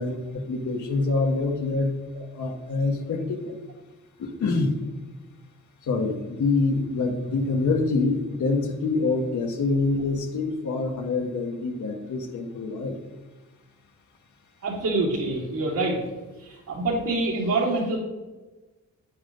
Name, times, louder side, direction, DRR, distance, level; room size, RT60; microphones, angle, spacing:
voice 1, 0.0-3.5 4.2-4.8 5.8-13.0, left 3 dB, 80° left, 3 dB, 1.6 m, -26 dB
voice 2, 14.6-16.0 16.4-18.0, right 2 dB, 85° right, -8 dB, 3.1 m, -26 dB
9.9 x 9.6 x 3.9 m, 1.1 s
cardioid pair, 110°, 30 cm